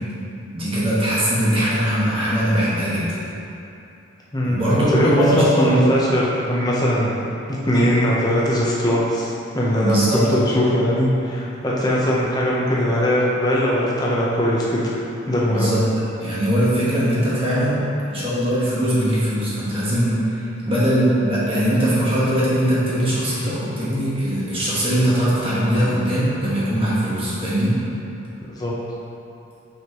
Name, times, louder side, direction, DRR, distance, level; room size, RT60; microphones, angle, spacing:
voice 1, 0.5-3.2 4.4-5.9 9.8-10.3 15.5-15.8 16.2-17.8 18.1-27.7, equal, 25° right, -9 dB, 1.3 m, -20 dB
voice 2, 4.3-7.1 7.5-10.0 10.3-15.0 15.3-15.7 20.7-20.9 28.5-28.7, equal, 20° left, -5 dB, 0.8 m, -20 dB
6.1 x 5.8 x 3.0 m, 2.7 s
head